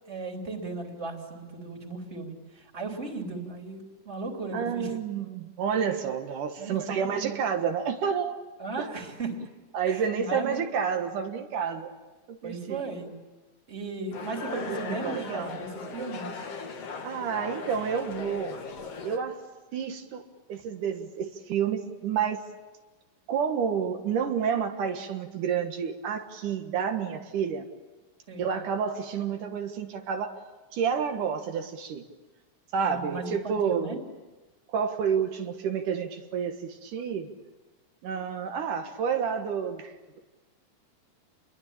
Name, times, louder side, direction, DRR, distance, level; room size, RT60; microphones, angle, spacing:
voice 1, 0.1-4.9 6.6-7.3 8.6-9.4 9.8-10.6 12.4-13.1 13.7-16.3 28.3-28.5 32.8-34.0, right 3 dB, 20° right, 2 dB, 3.4 m, -36 dB
voice 2, 4.5-8.4 8.8-8.9 9.7-11.9 12.3-12.8 14.7-15.6 17.0-18.5 19.0-19.4 19.7-20.2 20.5-22.4 23.3-27.7 28.4-30.3 30.7-32.0 32.7-34.0 34.7-37.3 38.0-40.2, right 7 dB, 80° right, 5 dB, 3.0 m, -29 dB
sound 1, 14.1-19.2, left 4 dB, 55° left, 2.9 m, -38 dB
28.5 x 22.5 x 8.8 m, 1.2 s
omnidirectional pair, 3.7 m